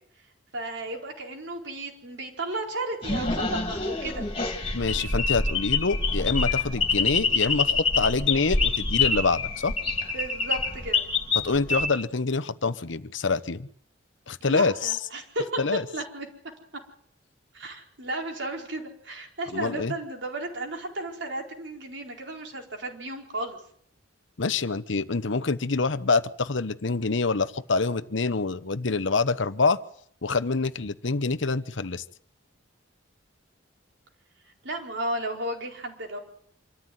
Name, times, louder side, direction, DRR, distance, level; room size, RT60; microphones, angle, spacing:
voice 1, 0.5-4.3 10.1-11.1 14.5-16.3 17.5-23.6 34.6-36.2, right 2 dB, 70° right, 2 dB, 4.5 m, -34 dB
sound 1, 3.0-11.9, left 4 dB, 30° left, 2.9 m, -26 dB
voice 2, 4.7-9.7 11.4-13.7 14.3-14.9 15.6-15.8 19.5-19.9 24.4-29.8 30.2-32.0, left 4 dB, 75° left, 15 dB, 1.0 m, -26 dB
26.0 x 14.0 x 9.5 m, 0.64 s
head